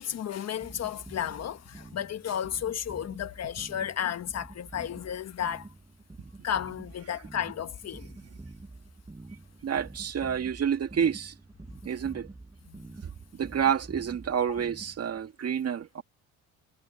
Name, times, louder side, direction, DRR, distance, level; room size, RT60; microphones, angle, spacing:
voice 1, 0.0-5.7 6.4-8.1 12.7-12.8 14.5-14.6, left 9 dB, 50° left, 1.4 m, -33 dB
sound 1, 0.6-15.3, right 2 dB, 15° right, 6.3 m, -48 dB
voice 2, 9.6-11.3 11.8-12.3 13.0-16.0, right 8 dB, 45° right, 2.2 m, -29 dB
cardioid pair, 95°, 33 cm